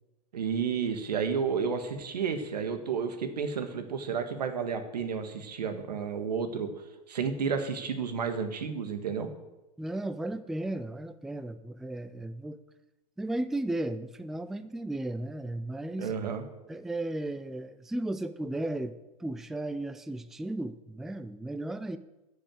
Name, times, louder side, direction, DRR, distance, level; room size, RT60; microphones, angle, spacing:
voice 1, 0.3-6.7 7.1-9.3 16.0-16.4, right 6 dB, 85° right, 8 dB, 1.6 m, -31 dB
voice 2, 9.8-12.6 13.2-16.1 16.7-18.9 19.2-22.0, right 1 dB, ahead, 12 dB, 0.4 m, -35 dB
10.0 x 6.3 x 7.6 m, 1.0 s
hypercardioid pair, 115°, 20 cm